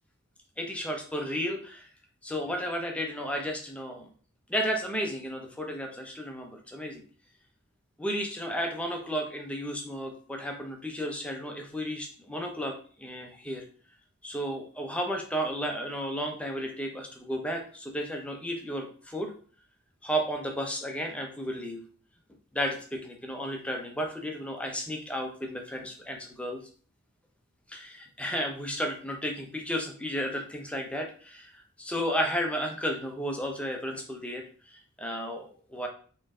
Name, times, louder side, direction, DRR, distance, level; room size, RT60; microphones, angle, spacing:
voice 1, 0.6-1.9 2.2-4.1 4.5-7.0 8.0-13.6 14.2-19.3 20.0-21.8 22.5-26.6 27.7-35.9, equal, 5° left, 2 dB, 0.7 m, -33 dB
4.3 x 3.2 x 3.7 m, 0.43 s
head